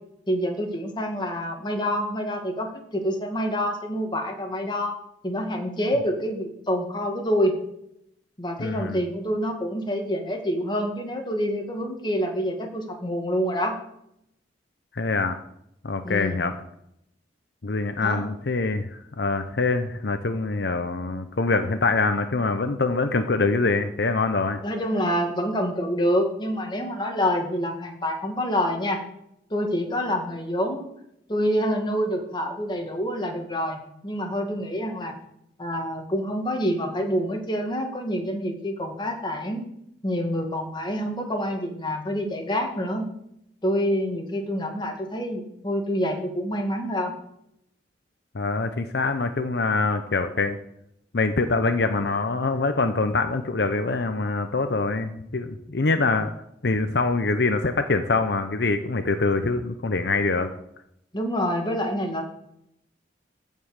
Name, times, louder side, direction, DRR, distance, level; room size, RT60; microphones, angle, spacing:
voice 1, 0.3-5.0 5.2-7.5 8.4-13.8 16.0-16.4 18.0-18.3 24.6-29.0 29.5-30.9 31.3-35.1 35.6-39.7 40.0-43.1 43.6-47.1 61.1-62.2, equal, 25° left, 3 dB, 2.0 m, -27 dB
voice 2, 8.6-9.0 14.9-15.4 15.8-16.5 17.6-24.6 48.3-50.6 51.1-56.3 56.6-60.5, left 3 dB, 70° left, 8 dB, 0.8 m, -24 dB
15.0 x 5.5 x 6.6 m, 0.76 s
head